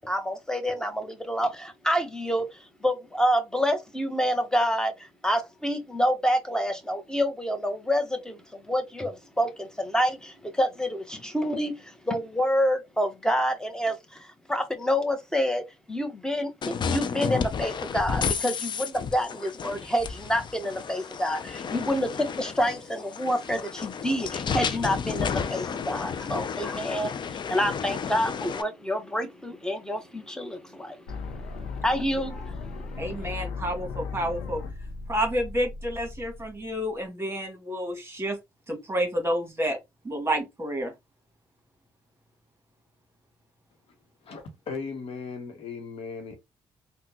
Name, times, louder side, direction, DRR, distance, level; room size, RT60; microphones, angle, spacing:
voice 1, 0.0-2.5 2.8-31.2 31.8-33.0, equal, 5° left, 1.1 m, -28 dB
sound 1, 16.6-28.6, left 6 dB, 45° left, 0.5 m, -32 dB
sound 2, 31.1-37.0, left 4 dB, 90° left, 0.7 m, -37 dB
voice 2, 33.0-34.6 35.1-38.4 38.7-39.8 40.0-40.9, equal, 20° right, 1.7 m, -29 dB
voice 3, 44.2-46.4, left 5 dB, 60° left, 1.1 m, -37 dB
3.6 x 2.3 x 2.9 m
supercardioid pair, 55°, 11 cm